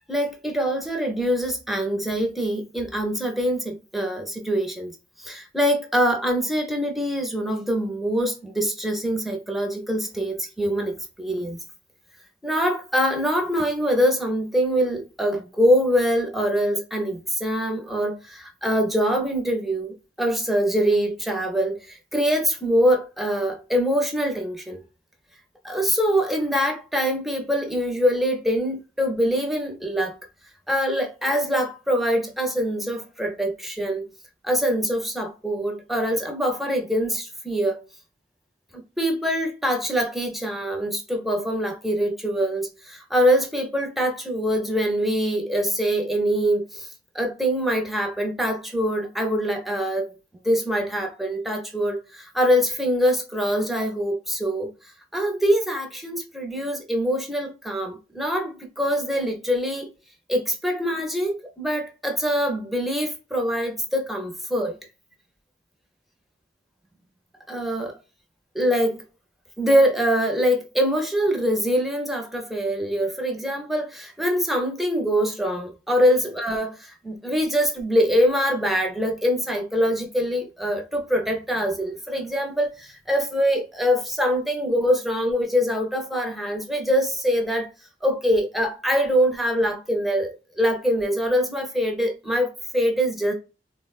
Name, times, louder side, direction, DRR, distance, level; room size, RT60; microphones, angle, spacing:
voice 1, 0.1-11.6 12.4-24.8 25.6-30.2 30.7-34.1 34.4-37.8 38.7-46.9 47.1-50.1 50.4-54.7 55.1-59.9 60.3-64.7 67.5-68.0 68.5-69.0 69.6-87.7 88.0-92.5 92.7-93.3, equal, ahead, 0.5 m, -24 dB
3.7 x 2.0 x 2.3 m
head